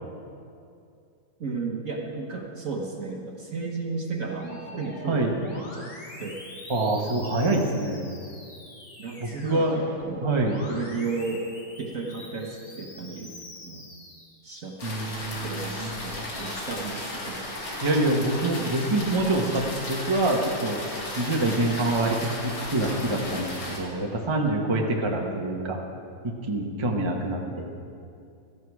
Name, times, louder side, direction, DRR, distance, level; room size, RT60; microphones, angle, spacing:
voice 1, 1.4-5.9 6.2-6.4 7.5-7.6 9.0-10.3 10.7-11.4 11.8-13.3 13.6-13.9 14.4-14.8 15.4-17.4 21.4-21.6 25.0-25.2, right 4 dB, 50° right, 1 dB, 1.4 m, -34 dB
Musical instrument, 4.4-14.8 15.3-16.8, left 2 dB, 40° left, 2.0 m, -45 dB
voice 2, 6.7-8.0 9.2-9.8 10.2-10.6 14.8-15.9 16.2-16.3 17.8-20.8 21.2-25.8 26.2-27.7, right 2 dB, 15° right, 0 dB, 1.1 m, -26 dB
sound 1, 14.8-23.8, left 1 dB, 85° left, 3.1 m, -35 dB
16.5 x 14.0 x 4.8 m, 2.4 s
omnidirectional pair, 2.1 m